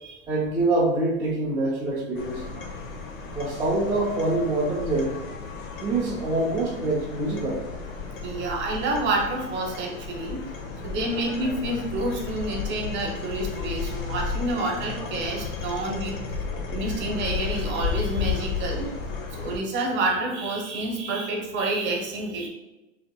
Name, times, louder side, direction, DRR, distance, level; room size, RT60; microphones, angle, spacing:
voice 1, 0.3-2.4 3.3-5.1 5.8-7.6, right 2 dB, 10° right, -8 dB, 0.4 m, -25 dB
sound 1, 2.1-19.6, left 5 dB, 80° left, 1.0 m, -33 dB
voice 2, 8.2-10.4 10.8-16.2 16.7-18.9 19.4-22.5, right 2 dB, 30° right, 1 dB, 0.9 m, -28 dB
6.4 x 2.8 x 2.2 m, 1.0 s
hypercardioid pair, 130°, 40 cm